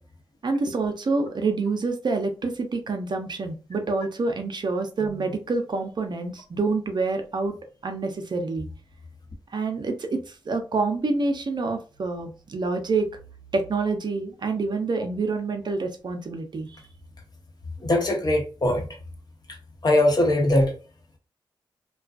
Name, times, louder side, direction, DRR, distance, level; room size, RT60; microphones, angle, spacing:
voice 1, 0.4-7.5 7.8-8.7 9.5-10.2 10.5-13.1 13.5-16.8, right 3 dB, 55° right, 0.6 m, -27 dB
voice 2, 17.8-18.9 19.8-20.7, left 1 dB, 45° left, 0.9 m, -21 dB
2.4 x 2.3 x 2.4 m
cardioid pair, 50°, 9 cm